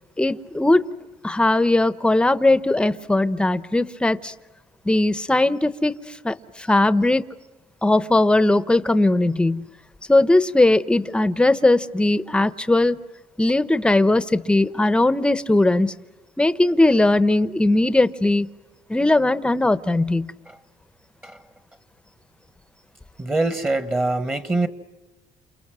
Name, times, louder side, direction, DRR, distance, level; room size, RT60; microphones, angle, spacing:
voice 1, 0.2-0.9 1.2-4.3 4.8-7.2 7.8-9.7 10.1-13.0 13.4-15.9 16.4-18.5 18.9-20.3, left 2 dB, 10° left, 14 dB, 0.8 m, -19 dB
voice 2, 23.2-24.7, right 2 dB, 15° right, 11 dB, 1.2 m, -24 dB
29.0 x 28.5 x 6.2 m, 1.1 s
cardioid pair, 125°, 12 cm